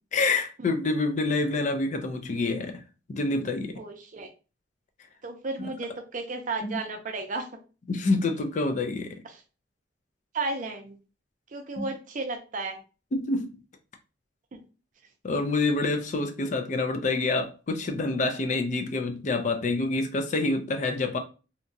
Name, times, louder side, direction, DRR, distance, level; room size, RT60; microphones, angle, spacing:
voice 1, 0.1-2.8 3.1-3.8 5.6-5.7 6.6-6.8 7.9-9.2 11.8-11.9 13.1-13.6 15.2-21.2, left 3 dB, 40° left, 0.4 m, -27 dB
voice 2, 3.8-4.3 5.2-7.5 9.3-9.4 10.3-11.0 11.5-12.8 14.5-14.6, right 3 dB, 45° right, 0.5 m, -33 dB
2.8 x 2.3 x 2.6 m
head